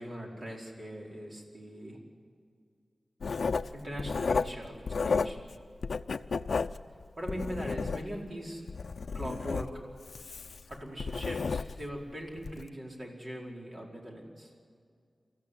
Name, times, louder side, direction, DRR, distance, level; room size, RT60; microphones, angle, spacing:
voice 1, 0.0-2.0 3.7-4.8 5.0-5.4 7.2-8.6 9.1-9.7 10.7-14.5, equal, 45° right, -1 dB, 4.8 m, -40 dB
Writing, 3.2-5.5 5.8-8.3 8.7-12.0 12.4-12.6, left 4 dB, 80° left, 0.6 m, -32 dB
28.0 x 14.5 x 8.5 m, 2.2 s
wide cardioid pair, 100°, 0 cm